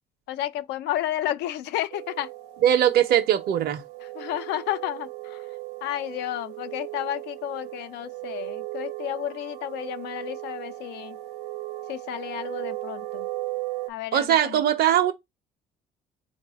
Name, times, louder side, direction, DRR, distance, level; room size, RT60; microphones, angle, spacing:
voice 1, 0.3-2.3 4.2-5.4 5.8-11.2 11.9-13.3 13.9-14.6, left 12 dB, 80° left, 0.5 m, -32 dB
sound 1, 1.9-13.9, right 18 dB, 85° right, 0.6 m, -37 dB
voice 2, 2.6-3.8 14.1-15.1, right 10 dB, 65° right, 0.9 m, -20 dB
4.0 x 2.6 x 3.4 m
cardioid pair, 110°, 17 cm